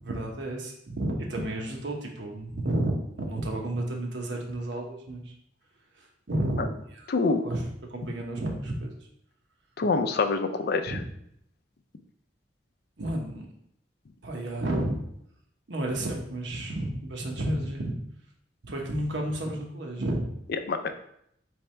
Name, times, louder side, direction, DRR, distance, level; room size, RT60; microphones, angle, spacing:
voice 1, 0.0-5.3 6.0-7.1 7.4-7.6 7.9-8.9 10.9-11.0 13.0-13.5 14.2-15.0 15.7-18.0 18.7-20.3, right 1 dB, 80° right, 0 dB, 1.0 m, -31 dB
voice 2, 7.1-7.5 9.8-11.0 20.5-20.9, left 4 dB, 60° left, 8 dB, 0.4 m, -26 dB
3.5 x 3.2 x 4.4 m, 0.72 s
head